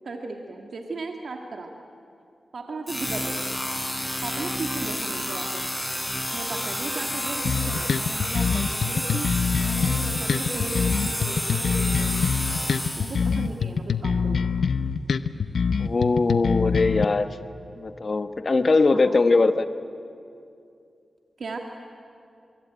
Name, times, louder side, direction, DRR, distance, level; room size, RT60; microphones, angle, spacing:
voice 1, 0.0-1.7 2.5-3.5 4.2-5.6 6.3-9.3 9.6-12.2 13.0-14.4 18.9-19.2 21.4-21.6, right 3 dB, 70° right, 2 dB, 2.1 m, -36 dB
sound 1, 2.9-13.4, equal, 5° left, 4.2 m, -30 dB
sound 2, 7.4-17.0, left 6 dB, 80° left, 0.8 m, -25 dB
voice 2, 15.8-17.3 17.8-19.7, left 3 dB, 50° left, 10 dB, 1.3 m, -21 dB
25.0 x 23.0 x 9.1 m, 2.5 s
cardioid pair, 50°, 0 cm